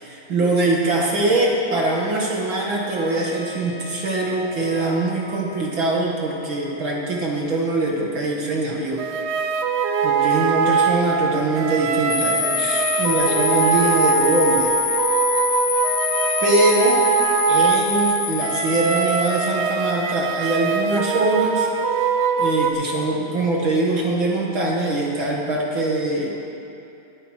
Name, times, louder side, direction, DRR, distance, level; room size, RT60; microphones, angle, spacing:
voice 1, 0.0-9.1 9.7-14.7 16.4-17.0 17.5-26.3, right 2 dB, 45° right, -2 dB, 2.0 m, -23 dB
Trumpet, 2.8-7.6, left 2 dB, 60° left, 5.0 m, -42 dB
sound 1, 9.0-22.7, right 6 dB, 75° right, 1.5 m, -22 dB
sound 2, 12.1-19.5, left 12 dB, 85° left, 1.6 m, -26 dB
20.0 x 9.8 x 6.4 m, 2.8 s
omnidirectional pair, 4.0 m